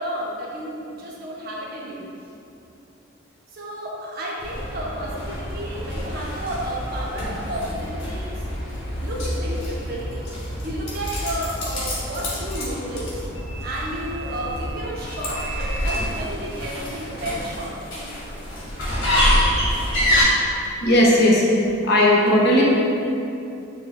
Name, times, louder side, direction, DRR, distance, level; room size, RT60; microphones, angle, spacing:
voice 1, 0.0-2.0 3.5-8.5 9.0-13.2 13.6-17.7, right 1 dB, 45° right, -4 dB, 0.4 m, -32 dB
sound 1, 4.4-20.2, equal, 75° left, 0.9 m, -27 dB
voice 2, 20.8-21.4 21.8-22.6, left 1 dB, 50° left, -3 dB, 0.4 m, -16 dB
2.3 x 2.0 x 3.9 m, 2.7 s
head